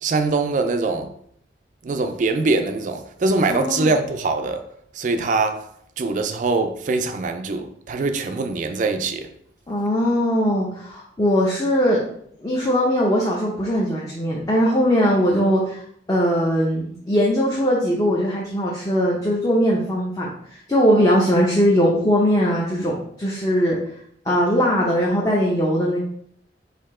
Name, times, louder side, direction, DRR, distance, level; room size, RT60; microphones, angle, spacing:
voice 1, 0.0-1.1 1.8-4.6 4.9-5.7 6.0-9.3, right 3 dB, 45° right, 0.3 m, -23 dB
voice 2, 3.5-3.9 9.7-12.0 12.4-15.8 16.1-23.8 24.2-26.0, equal, 20° left, 0.6 m, -20 dB
4.2 x 2.7 x 4.2 m
head